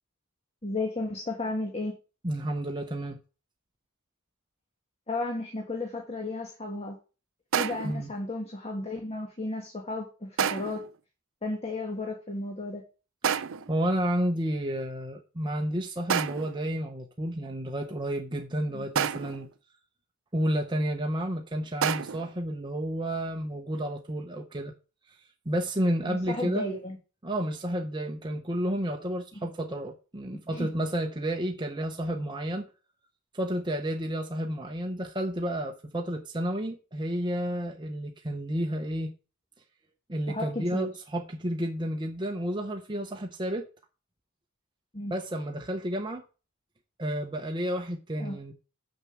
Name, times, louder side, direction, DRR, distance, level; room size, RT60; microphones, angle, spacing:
voice 1, 0.6-1.9 5.1-7.0 7.6-10.8 11.4-12.8 18.7-18.9 26.1-27.0 29.4-29.5 30.5-30.7 40.3-40.9 44.9-45.1 48.2-48.3, left 2 dB, 30° left, 1.8 m, -33 dB
voice 2, 2.2-3.2 7.8-8.1 13.7-19.5 20.3-24.7 25.4-26.7 27.2-32.7 33.3-39.1 40.1-43.6 45.1-46.2 47.0-48.5, right 1 dB, 20° right, 0.9 m, -31 dB
sound 1, 7.5-8.0 10.4-10.9 13.2-13.8 16.1-16.6 19.0-19.5 21.8-22.3, right 8 dB, 65° right, 0.6 m, -29 dB
6.5 x 6.0 x 7.2 m
head